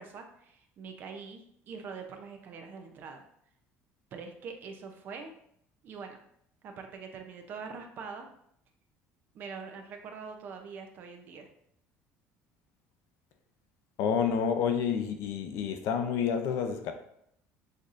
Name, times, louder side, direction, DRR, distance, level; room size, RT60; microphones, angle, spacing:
voice 1, 0.0-3.2 4.1-5.3 5.8-6.2 6.6-8.3 9.3-11.5, right 5 dB, 40° right, 0.5 m, -43 dB
voice 2, 14.0-16.9, left 7 dB, 60° left, 0.5 m, -29 dB
6.3 x 2.7 x 2.5 m
cardioid pair, 175°, 5 cm